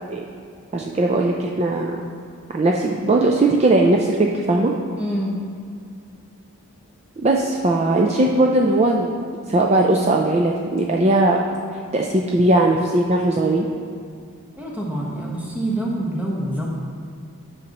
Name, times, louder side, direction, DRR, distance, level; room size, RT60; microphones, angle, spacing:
voice 1, 0.7-2.0 2.5-4.7 7.2-9.1 9.5-11.4 11.9-13.7, right 2 dB, 30° right, 0 dB, 0.4 m, -19 dB
voice 2, 5.0-5.3 14.5-16.7, right 1 dB, 5° right, -4 dB, 1.1 m, -26 dB
10.5 x 6.5 x 3.0 m, 2.3 s
head